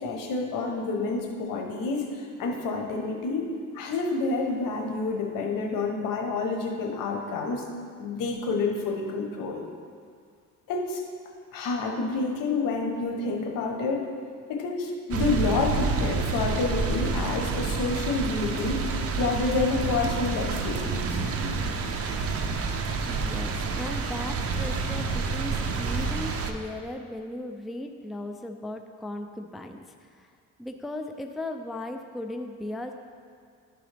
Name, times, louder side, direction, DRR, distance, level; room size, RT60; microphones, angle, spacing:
voice 1, 0.0-3.5 3.7-7.6 8.0-9.6 10.7-11.0 11.5-14.1 14.5-18.8 19.1-21.2, left 3 dB, 85° left, 2 dB, 1.0 m, -28 dB
sound 1, 15.1-26.5, right 4 dB, 45° right, 0.6 m, -28 dB
voice 2, 23.1-30.3 30.6-32.9, left 1 dB, ahead, 5 dB, 0.3 m, -37 dB
11.5 x 3.9 x 3.3 m, 2.1 s
cardioid pair, 95°, 32 cm